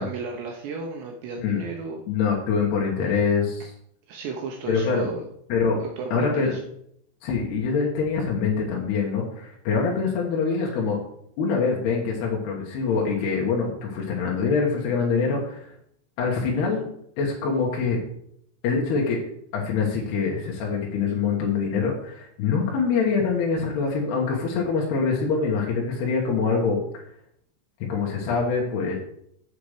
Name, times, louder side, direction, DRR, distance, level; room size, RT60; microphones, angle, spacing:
voice 1, 0.0-2.0 3.1-3.2 4.1-5.3 5.8-6.6, right 4 dB, 75° right, 2 dB, 2.6 m, -34 dB
voice 2, 2.1-3.7 4.7-5.1 5.5-5.8 6.1-6.6 7.2-11.0 11.4-15.7 16.2-16.9 17.2-18.0 18.6-19.2 19.5-26.8 27.9-28.9, left 5 dB, 65° left, -2 dB, 3.0 m, -24 dB
8.1 x 7.8 x 5.0 m, 0.71 s
omnidirectional pair, 5.8 m